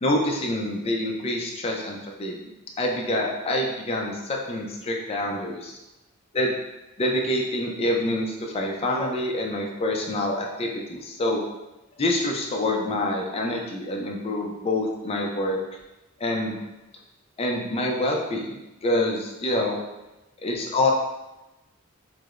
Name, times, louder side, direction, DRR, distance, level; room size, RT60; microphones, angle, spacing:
voice 1, 0.0-2.3 2.8-5.8 6.3-6.5 7.0-11.4 12.0-15.6 16.2-16.6 17.4-18.5 18.8-19.8 20.4-20.9, left 1 dB, 30° left, 0 dB, 0.4 m, -26 dB
4.6 x 2.0 x 2.4 m, 0.99 s
head